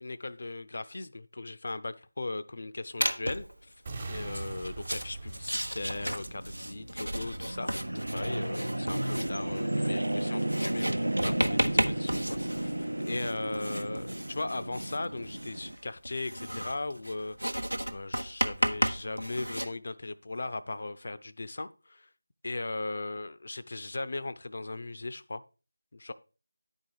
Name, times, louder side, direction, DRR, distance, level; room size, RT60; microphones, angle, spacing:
voice 1, 0.0-3.7 4.1-17.6 17.9-22.1 22.4-25.4 25.9-26.1, left 2 dB, 45° left, 0.5 m, -38 dB
Writing, 3.0-3.5 4.2-19.7, equal, 85° right, 0.9 m, -34 dB
sound 1, 3.9-7.9, right 3 dB, 30° right, 1.2 m, -43 dB
sound 2, 6.0-15.8, right 1 dB, 70° right, 0.6 m, -33 dB
10.0 x 4.6 x 4.7 m
figure-of-eight pair, 165°, 0 cm